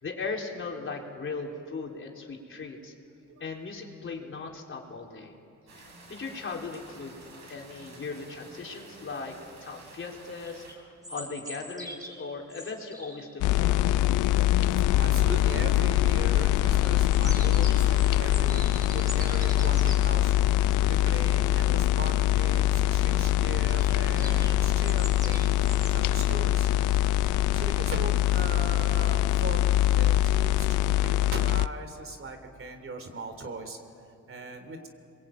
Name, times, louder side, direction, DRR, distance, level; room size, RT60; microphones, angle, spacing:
voice 1, 0.0-2.9 3.4-5.3 5.7-14.1, left 4 dB, 40° left, 0 dB, 4.1 m, -38 dB
sound 1, 5.7-10.7, right 2 dB, 60° right, 7.3 m, -50 dB
sound 2, 10.5-13.4 16.7-20.0 23.6-26.3, equal, 10° right, 6.1 m, -43 dB
sound 3, 13.4-31.7, left 13 dB, 85° left, 0.6 m, -23 dB
voice 2, 14.9-25.5 25.9-26.7 26.9-27.0 27.5-33.8 34.3-34.9, right 2 dB, 45° right, 7 dB, 3.4 m, -39 dB
27.0 x 22.5 x 9.1 m, 2.5 s
cardioid pair, 90°, 30 cm